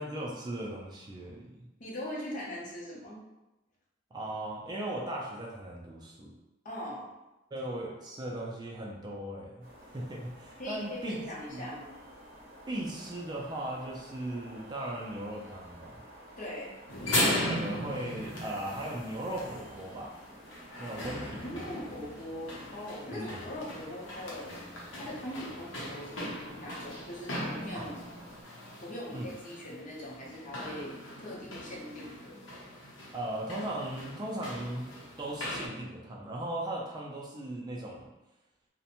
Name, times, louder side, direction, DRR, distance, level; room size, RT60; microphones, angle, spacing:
voice 1, 0.0-1.7 4.1-6.3 7.5-11.2 11.5-11.7 12.7-16.0 17.2-20.1 20.8-21.9 23.1-23.4 27.7-27.9 29.1-29.3 33.1-34.9 35.2-38.1, right 1 dB, 20° right, -3 dB, 0.4 m, -38 dB
voice 2, 1.8-3.2 6.6-7.1 10.6-11.9 16.4-16.7 21.4-24.6 24.9-28.0 28.8-32.4, left 1 dB, 45° left, -5 dB, 0.7 m, -41 dB
sound 1, 9.6-28.4, equal, 50° right, 0.8 m, -52 dB
sound 2, 16.9-35.7, left 1 dB, 85° left, 0.7 m, -38 dB
2.5 x 2.1 x 2.8 m, 0.99 s
head